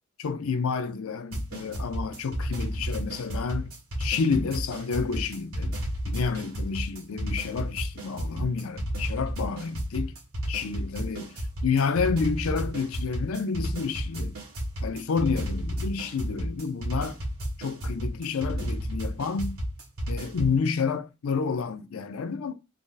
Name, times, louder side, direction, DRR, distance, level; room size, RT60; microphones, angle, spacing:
voice 1, 0.2-3.7 4.0-5.8 6.1-10.1 10.5-14.3 14.8-17.2 17.6-19.6 20.1-22.5, left 5 dB, 75° left, 0.5 m, -29 dB
sound 1, 1.3-20.6, equal, 70° right, 1.7 m, -32 dB
3.7 x 2.1 x 3.9 m
head